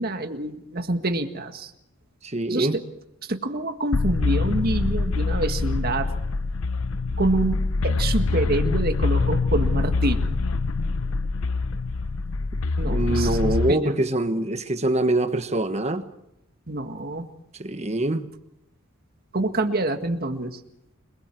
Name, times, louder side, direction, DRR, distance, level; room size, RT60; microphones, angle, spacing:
voice 1, 0.0-1.7 2.5-2.8 3.2-6.1 7.2-10.4 12.8-13.4 13.7-14.0 16.7-17.3 19.3-20.6, right 2 dB, 45° right, 1.8 m, -27 dB
voice 2, 2.2-2.7 12.9-16.0 17.6-18.3, right 1 dB, 30° right, 1.4 m, -24 dB
sound 1, 3.9-13.7, left 3 dB, 70° left, 0.7 m, -24 dB
30.0 x 21.5 x 4.7 m
head